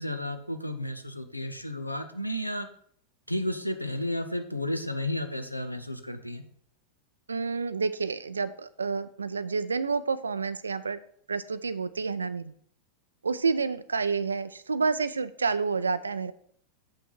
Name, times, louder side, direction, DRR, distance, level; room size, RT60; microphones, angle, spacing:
voice 1, 0.0-2.7 3.3-6.4, left 1 dB, 90° left, 9 dB, 0.7 m, -32 dB
voice 2, 7.3-11.0 11.3-12.5 13.2-16.3, right 4 dB, 75° right, 15 dB, 0.4 m, -29 dB
7.2 x 5.7 x 4.5 m, 0.64 s
figure-of-eight pair, 90°, 0 cm